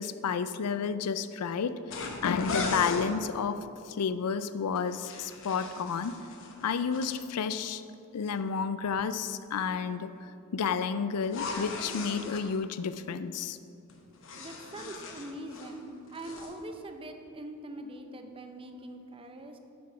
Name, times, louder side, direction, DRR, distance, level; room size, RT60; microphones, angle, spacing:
voice 1, 0.0-6.2 6.6-7.8 8.1-13.6, left 6 dB, 85° left, 13 dB, 0.4 m, -31 dB
sound 1, 1.9-3.1 4.8-7.2 11.2-12.5 13.9-15.8 16.1-16.5, left 3 dB, 60° left, 0.9 m, -38 dB
voice 2, 14.4-19.6, right 1 dB, 25° right, 5 dB, 0.6 m, -43 dB
7.6 x 6.2 x 5.7 m, 2.6 s
head